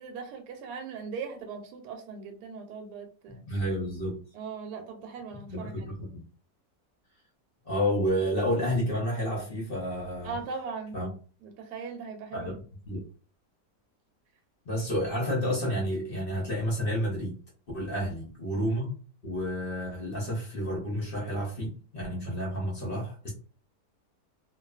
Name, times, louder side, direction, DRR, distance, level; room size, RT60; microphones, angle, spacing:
voice 1, 0.0-3.4 4.3-5.9 10.2-11.0 11.4-12.6 18.0-18.1, right 5 dB, 75° right, 4 dB, 1.1 m, -39 dB
voice 2, 3.5-4.2 5.5-6.2 7.6-10.4 10.9-11.1 12.3-12.5 12.9-13.0 14.6-17.4 17.7-18.9 19.2-23.3, equal, 50° left, -3 dB, 0.7 m, -30 dB
2.6 x 2.3 x 2.3 m, 0.40 s
omnidirectional pair, 1.8 m